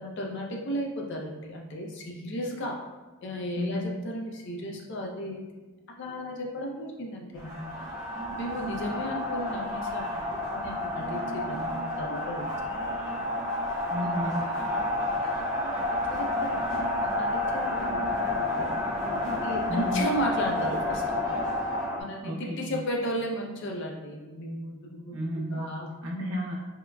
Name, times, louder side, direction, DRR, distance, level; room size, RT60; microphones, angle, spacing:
voice 1, 0.0-2.8 3.2-5.4 6.0-7.6 8.4-12.5 14.2-15.0 15.4-15.8 16.1-18.7 19.0-21.5 22.0-25.1 25.5-25.9, equal, 50° left, -1 dB, 0.4 m, -35 dB
voice 2, 3.5-3.9 13.9-14.4 19.7-20.0 22.2-22.8 25.1-25.7 26.0-26.5, left 1 dB, 65° right, -4 dB, 0.7 m, -32 dB
sound 1, 7.4-22.0, left 1 dB, 5° left, 0.9 m, -30 dB
3.6 x 2.1 x 2.2 m, 1.2 s
head